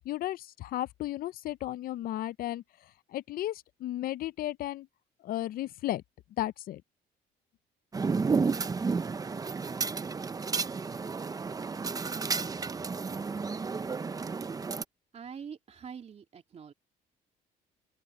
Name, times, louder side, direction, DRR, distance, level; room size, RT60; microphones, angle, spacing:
voice 1, 0.1-2.6 3.1-4.9 5.2-6.0 6.4-6.8, left 14 dB, 60° left, 0.5 m, -34 dB
sound 1, 7.9-14.8, right 4 dB, 20° right, 0.7 m, -32 dB
voice 2, 15.1-16.7, right 7 dB, 40° right, 3.0 m, -44 dB
open air
cardioid pair, 110°, 17 cm